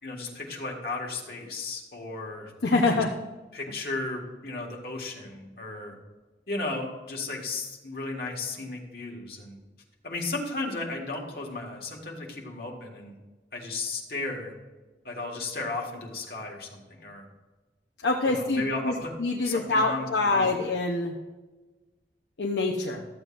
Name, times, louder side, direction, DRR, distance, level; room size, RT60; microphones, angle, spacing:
voice 1, 0.0-2.5 2.9-3.0 3.5-6.0 6.5-9.6 10.0-13.1 13.5-14.5 15.0-17.2 18.2-19.1 19.4-20.5, left 3 dB, 55° left, 0 dB, 1.8 m, -34 dB
voice 2, 2.6-3.1 18.0-21.2 22.4-23.1, left 3 dB, 75° left, 0 dB, 0.8 m, -25 dB
13.5 x 7.8 x 2.6 m, 1.2 s
head